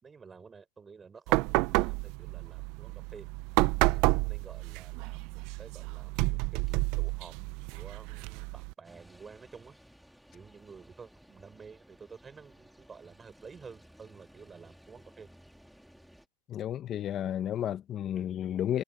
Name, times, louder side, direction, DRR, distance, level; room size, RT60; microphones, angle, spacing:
voice 1, 0.0-3.3 3.9-5.2 5.6-7.3 7.7-9.8 10.3-15.3, right 5 dB, 15° right, 4.6 m, -51 dB
sound 1, 1.3-8.7, right 23 dB, 50° right, 0.8 m, -30 dB
sound 2, 8.8-16.3, equal, ahead, 3.5 m, -57 dB
voice 2, 16.5-18.8, left 10 dB, 30° left, 1.6 m, -32 dB
hypercardioid pair, 125°, 0 cm